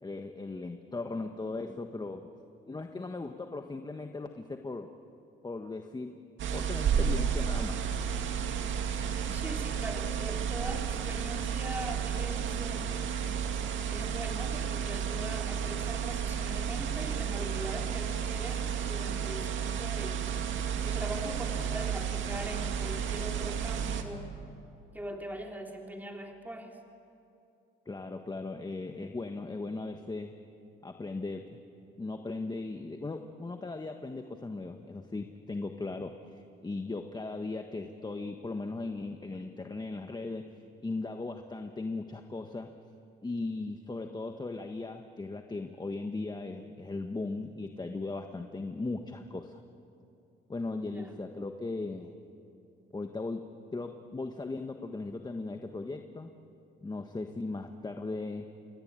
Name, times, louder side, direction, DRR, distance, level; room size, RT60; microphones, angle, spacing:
voice 1, 0.0-2.3 2.7-4.9 5.4-6.2 6.5-7.8 27.8-30.3 30.8-31.6 32.0-40.5 40.8-42.7 43.2-49.6 50.5-52.1 52.9-56.3 56.8-58.5, left 3 dB, 20° left, 5 dB, 1.4 m, -38 dB
sound 1, 6.4-24.0, right 7 dB, 75° right, 2.2 m, -32 dB
voice 2, 9.3-12.9 13.9-20.5 20.8-24.3 24.9-26.8 50.9-51.1, right 1 dB, 10° right, 2 dB, 3.2 m, -41 dB
28.5 x 23.0 x 9.0 m, 2.7 s
cardioid pair, 90°, 20 cm